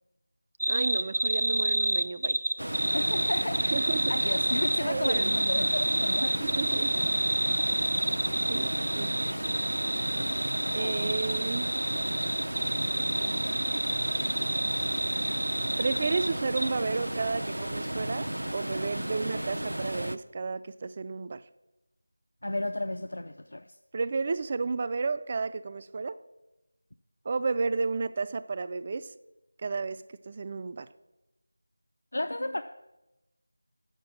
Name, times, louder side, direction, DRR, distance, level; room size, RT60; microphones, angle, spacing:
sound 1, 0.6-16.3 16.6-16.7, right 1 dB, 65° right, 0.9 m, -29 dB
voice 1, 0.7-2.4 3.7-4.1 4.8-5.3 6.3-7.0 8.5-9.4 10.7-11.7 15.8-21.4 23.9-26.2 27.2-29.1 29.6-30.9, right 4 dB, 25° right, 0.3 m, -32 dB
sound 2, 2.6-20.2, right 1 dB, 80° right, 0.6 m, -34 dB
voice 2, 2.9-3.8 4.1-6.6 10.8-11.0 22.4-23.8 32.1-32.6, left 1 dB, 65° left, 0.4 m, -33 dB
6.8 x 6.7 x 7.3 m
figure-of-eight pair, 170°, 0 cm